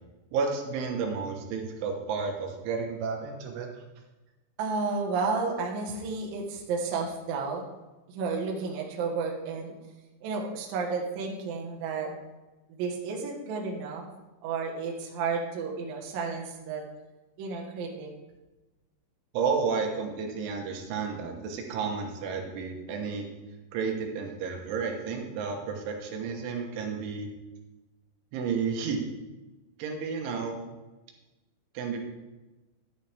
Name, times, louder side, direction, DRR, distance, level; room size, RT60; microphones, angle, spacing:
voice 1, 0.3-3.7 19.3-23.2 23.7-27.3 28.3-29.0 29.8-30.6 31.8-32.0, right 5 dB, 75° right, 2 dB, 3.6 m, -31 dB
voice 2, 4.6-7.6 8.1-9.7 10.2-12.1 12.7-14.1 14.4-16.8 17.4-18.1, right 4 dB, 60° right, 0 dB, 2.7 m, -32 dB
11.5 x 11.5 x 3.5 m, 1.1 s
omnidirectional pair, 5.6 m